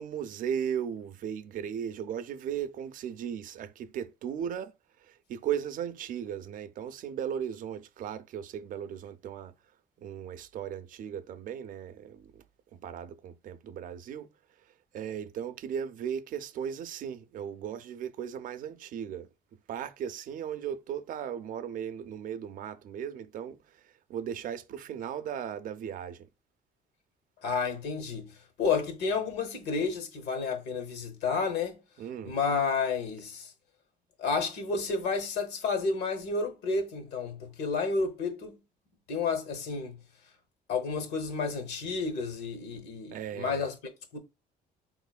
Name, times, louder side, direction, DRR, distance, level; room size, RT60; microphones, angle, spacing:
voice 1, 0.0-4.7 5.0-9.5 10.0-12.4 12.7-14.3 14.9-19.3 19.7-23.6 24.1-26.3 32.0-32.4 43.1-43.7, right 8 dB, 55° right, 0.4 m, -36 dB
voice 2, 27.4-28.3 28.6-31.8 32.2-33.5 34.2-38.6 39.1-40.0 40.7-44.2, left 4 dB, 80° left, 0.9 m, -31 dB
4.1 x 3.0 x 2.2 m
cardioid pair, 110°, 17 cm